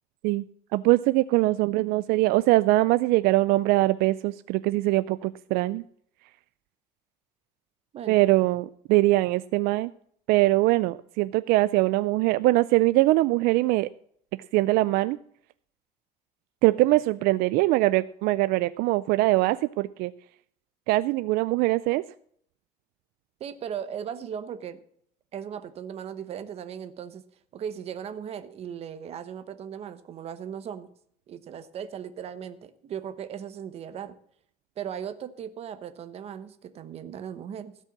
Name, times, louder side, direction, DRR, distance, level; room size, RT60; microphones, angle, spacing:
voice 1, 0.7-5.8 8.1-9.9 10.3-13.9 14.5-15.2 16.6-20.1 20.9-22.0, right 19 dB, 75° right, 15 dB, 0.4 m, -22 dB
voice 2, 23.4-24.8 25.3-27.2 27.5-30.9 31.3-34.2 34.8-37.8, right 8 dB, 40° right, 11 dB, 1.0 m, -37 dB
16.0 x 5.5 x 7.3 m, 0.63 s
cardioid pair, 155°, 16 cm